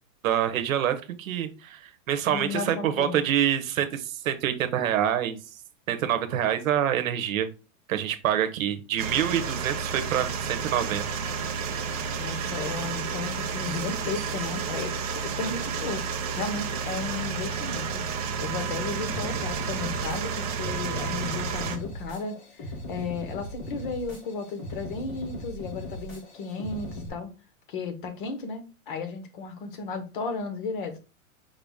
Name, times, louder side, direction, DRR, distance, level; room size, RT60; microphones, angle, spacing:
voice 1, 0.2-5.4 5.9-7.5 7.9-11.0, right 10 dB, 70° right, 9 dB, 1.0 m, -26 dB
voice 2, 2.3-3.2 12.2-14.9 15.2-16.0 16.3-18.0 18.4-27.3 27.7-31.0, left 4 dB, 35° left, 9 dB, 0.9 m, -34 dB
sound 1, 9.0-21.8, right 6 dB, 30° right, 0.4 m, -31 dB
sound 2, 19.1-27.1, left 1 dB, 15° left, 0.6 m, -39 dB
5.6 x 2.7 x 3.5 m, 0.32 s
supercardioid pair, 175°, 42 cm